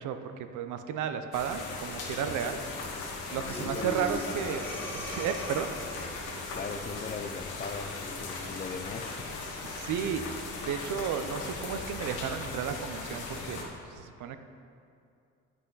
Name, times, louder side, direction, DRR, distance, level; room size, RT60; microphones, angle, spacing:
voice 1, 0.0-2.6 3.3-4.6 4.9-5.7 9.6-10.3 10.6-13.6 14.0-14.4, right 8 dB, 80° right, 8 dB, 0.6 m, -33 dB
sound 1, 1.3-13.6, left 3 dB, 85° left, 1.3 m, -38 dB
voice 2, 3.3-4.5 6.5-9.3, left 5 dB, 30° left, 7 dB, 0.5 m, -40 dB
Breathing, 3.5-6.0, left 1 dB, 5° left, 1.2 m, -39 dB
8.1 x 6.1 x 3.9 m, 2.5 s
cardioid pair, 90°, 30 cm